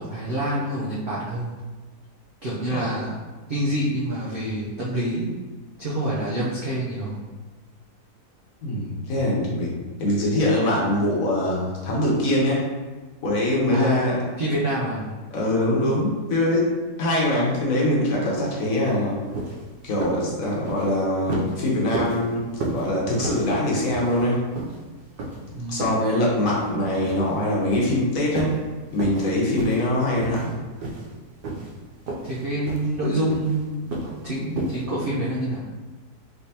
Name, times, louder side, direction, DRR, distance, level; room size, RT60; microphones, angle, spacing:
voice 1, 0.0-1.6 2.4-3.2 3.5-5.3 5.8-7.2 13.7-14.1 14.4-15.1 25.4-25.9 29.5-29.8 32.2-33.9 34.2-35.7, right 1 dB, 70° right, -6 dB, 0.5 m, -27 dB
voice 2, 8.6-9.7 10.0-12.7 13.2-14.2 15.3-16.7 17.0-19.2 19.8-24.4 25.7-28.6 28.9-30.5, left 1 dB, 65° left, -4 dB, 1.2 m, -23 dB
sound 1, 18.9-19.0 19.3-19.6 20.0-20.3 20.6-20.9 21.3-21.6 21.9-22.2 22.6-22.9 23.2-23.5 23.9-24.3 24.5-24.8 25.2-25.4 25.8-26.1 26.5-26.7 27.1-27.4 27.7-28.0 28.3-28.6 28.9-29.3 29.6-29.9 30.2-30.5 30.8-31.1 31.4-31.7 32.1-32.4 32.6-32.9 33.3-33.6 33.9-34.2 34.6-34.8, right 2 dB, 85° right, 1.2 m, -31 dB
3.4 x 3.0 x 2.8 m, 1.3 s
omnidirectional pair, 1.7 m